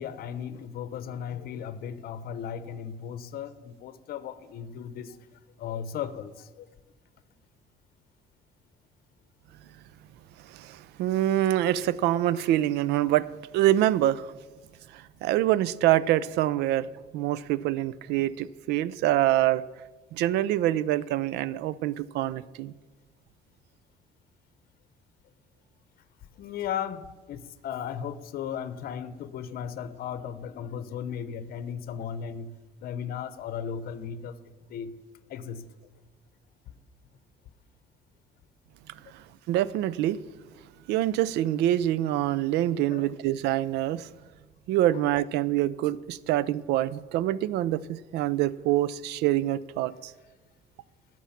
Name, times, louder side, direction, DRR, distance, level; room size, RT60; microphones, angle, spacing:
voice 1, 0.0-5.2 5.6-6.7 26.4-35.0 35.3-35.7 42.9-43.1, left 8 dB, 65° left, 0.8 m, -36 dB
voice 2, 10.4-13.3 13.5-14.3 14.9-16.9 17.1-19.6 20.1-22.7 39.1-40.2 40.9-44.1 44.7-50.1, right 13 dB, 85° right, 0.5 m, -25 dB
16.0 x 6.2 x 5.8 m
cardioid pair, 110°, 17 cm